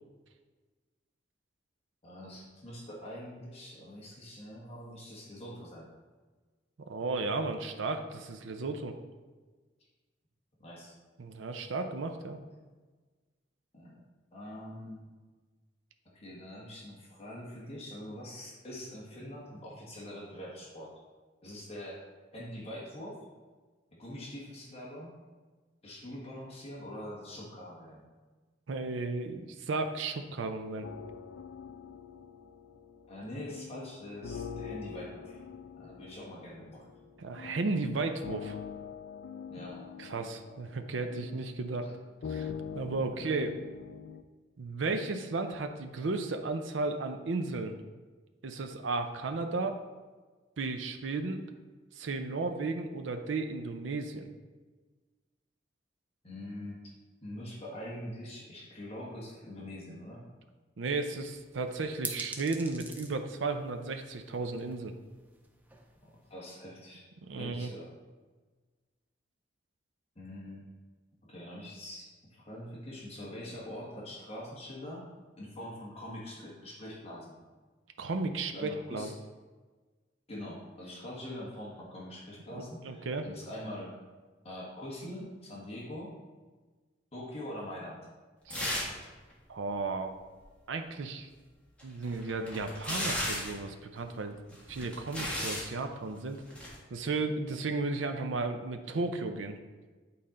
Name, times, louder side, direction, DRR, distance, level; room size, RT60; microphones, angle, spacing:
voice 1, 2.0-5.9 10.6-10.9 13.7-13.9 14.3-15.0 16.1-21.0 21.4-22.0 22.3-23.2 24.0-25.1 25.8-28.0 33.1-35.4 35.8-36.9 39.5-39.9 41.8-41.9 43.1-43.3 56.2-56.8 57.2-60.3 66.0-67.0 67.4-67.9 70.1-70.7 71.2-75.1 75.4-77.3 78.5-79.1 80.3-84.0 84.4-86.1 87.1-88.0, left 1 dB, 30° left, -4 dB, 1.3 m, -44 dB
voice 2, 6.9-8.9 11.2-12.4 28.7-30.9 37.2-38.6 40.0-41.9 42.3-42.5 42.7-43.6 44.6-47.8 48.4-49.8 50.6-51.4 52.0-54.3 60.8-64.9 67.3-67.7 78.0-79.1 82.5-83.2 88.5-88.8 89.5-90.2 90.7-91.3 91.8-94.4 94.7-96.4 96.9-99.5, right 3 dB, 80° right, 6 dB, 0.5 m, -34 dB
sound 1, 30.8-44.2, left 7 dB, 85° left, 0.4 m, -44 dB
sound 2, 61.1-66.3, right 2 dB, 10° right, 0.5 m, -46 dB
sound 3, 88.5-89.0 89.3-89.4 91.8-93.6 94.5-95.7 96.5-96.8, left 1 dB, 5° left, 1.4 m, -35 dB
8.6 x 4.2 x 3.7 m, 1.3 s
head